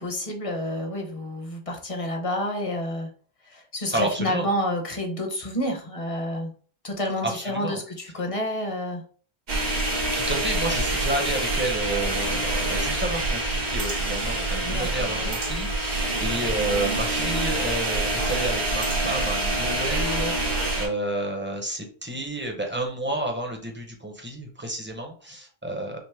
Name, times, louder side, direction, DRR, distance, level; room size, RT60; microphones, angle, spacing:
voice 1, 0.0-3.1 3.4-6.5 6.8-9.0 14.6-15.3, left 1 dB, 35° left, 2 dB, 0.9 m, -29 dB
voice 2, 3.9-4.5 7.2-7.8 10.1-26.0, right 1 dB, 10° right, 2 dB, 0.7 m, -30 dB
sound 1, 9.5-20.9, right 2 dB, 75° right, 1.7 m, -26 dB
6.0 x 2.0 x 3.4 m, 0.43 s
omnidirectional pair, 1.1 m